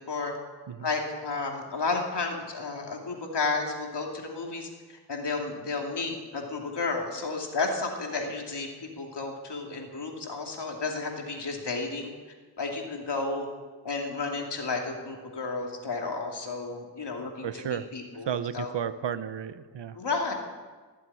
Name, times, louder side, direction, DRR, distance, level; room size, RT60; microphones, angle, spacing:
voice 1, 0.8-4.7 5.1-12.1 12.6-13.5 13.8-18.3 18.5-18.7 19.9-20.3, left 3 dB, 75° left, 1 dB, 2.7 m, -32 dB
voice 2, 17.4-17.9 18.2-20.0, right 8 dB, 85° right, 13 dB, 0.8 m, -33 dB
16.0 x 7.6 x 9.9 m, 1.4 s
wide cardioid pair, 65°, 41 cm